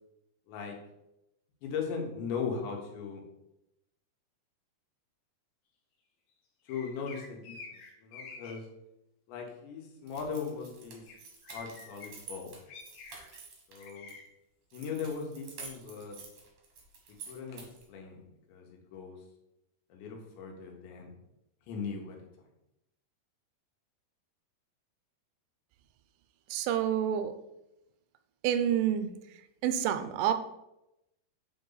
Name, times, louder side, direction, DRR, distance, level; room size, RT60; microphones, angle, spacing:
voice 1, 0.5-0.8 1.6-3.2 6.7-8.7 9.3-11.1 11.5-12.6 13.7-14.1 14.7-16.2 17.3-18.2 18.5-19.2 19.9-21.1 21.7-22.3, left 5 dB, 85° left, 1 dB, 3.5 m, -39 dB
sound 1, 6.7-8.5 11.1-11.2 11.4-12.1 12.7-13.4 13.8-14.2, left 4 dB, 65° left, 2.9 m, -48 dB
sound 2, 10.1-14.1 14.7-17.9, right 5 dB, 60° right, 1.8 m, -49 dB
voice 2, 26.5-27.3 28.4-29.1 29.6-30.3, right 9 dB, 85° right, 9 dB, 2.8 m, -28 dB
8.8 x 4.1 x 3.9 m, 0.87 s
omnidirectional pair, 5.0 m